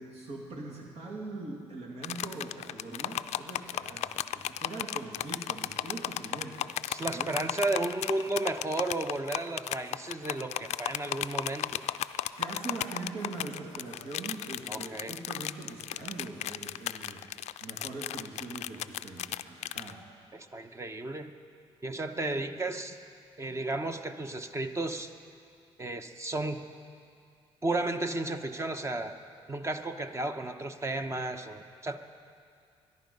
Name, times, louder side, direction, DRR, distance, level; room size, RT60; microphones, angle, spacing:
voice 1, 0.0-7.3 12.4-17.3 17.6-20.0, right 3 dB, 70° right, -2 dB, 2.4 m, -42 dB
sound 1, 2.0-19.9, left 12 dB, 75° left, 0.4 m, -35 dB
voice 2, 6.9-11.8 14.7-15.1 20.3-21.3 21.8-23.0 23.4-25.1 25.8-26.6 27.6-29.1 29.5-32.0, right 2 dB, 25° right, 7 dB, 1.0 m, -33 dB
22.5 x 11.0 x 5.4 m, 2.3 s
cardioid pair, 80°, 11 cm